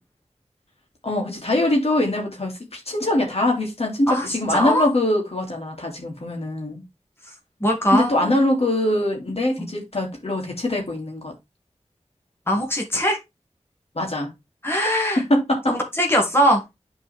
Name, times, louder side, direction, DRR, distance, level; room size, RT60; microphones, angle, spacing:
voice 1, 1.0-6.8 7.9-11.3 13.9-14.3 15.3-15.7, left 1 dB, 55° left, 2.8 m, -23 dB
voice 2, 4.1-4.9 7.6-8.3 9.6-9.7 12.5-13.2 14.6-15.2 15.7-16.6, equal, 20° left, 2.2 m, -21 dB
8.8 x 4.6 x 3.6 m
wide cardioid pair, 50°, 12 cm